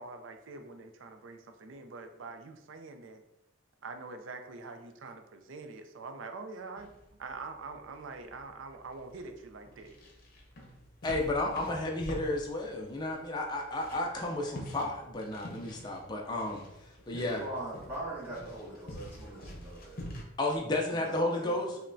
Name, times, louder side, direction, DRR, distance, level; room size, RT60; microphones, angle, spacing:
voice 1, 0.0-3.2 3.8-6.9 7.2-10.0, right 3 dB, 70° right, 7 dB, 0.4 m, -44 dB
sound 1, 6.8-20.2, equal, 45° left, 0.7 m, -47 dB
voice 2, 11.0-16.6 17.1-17.5 20.4-21.8, left 2 dB, 20° left, 0 dB, 0.4 m, -32 dB
voice 3, 17.1-20.0 20.9-21.5, right 1 dB, 10° right, -8 dB, 0.8 m, -41 dB
5.2 x 2.1 x 2.6 m, 0.89 s
head